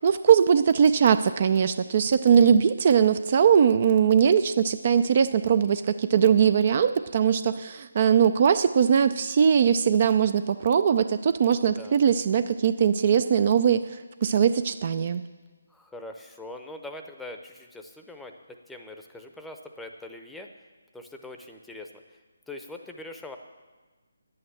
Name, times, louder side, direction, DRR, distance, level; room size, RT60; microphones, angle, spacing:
voice 1, 0.0-15.2, right 7 dB, 40° right, 12 dB, 0.4 m, -21 dB
voice 2, 15.7-20.5 20.9-22.0 22.5-23.4, left 2 dB, 5° left, 4 dB, 0.7 m, -42 dB
11.0 x 8.6 x 7.7 m, 1.3 s
figure-of-eight pair, 145°, 0 cm